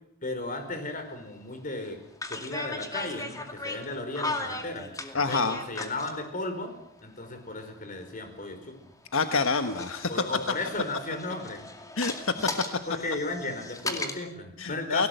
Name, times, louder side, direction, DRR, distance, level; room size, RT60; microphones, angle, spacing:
voice 1, 0.2-2.0 2.3-4.9 5.3-6.7 7.0-8.7 10.1-11.6 12.9-15.1, left 2 dB, 40° left, 7 dB, 5.0 m, -35 dB
sound 1, 0.6-0.7 1.1-1.4 2.1-6.2 7.3-8.9 9.3-14.1, left 2 dB, 15° left, 2.3 m, -37 dB
voice 2, 5.1-5.6 9.1-10.1 12.0-12.3 14.6-15.1, left 4 dB, 75° left, 8 dB, 1.3 m, -27 dB
29.5 x 18.5 x 8.0 m, 0.75 s
head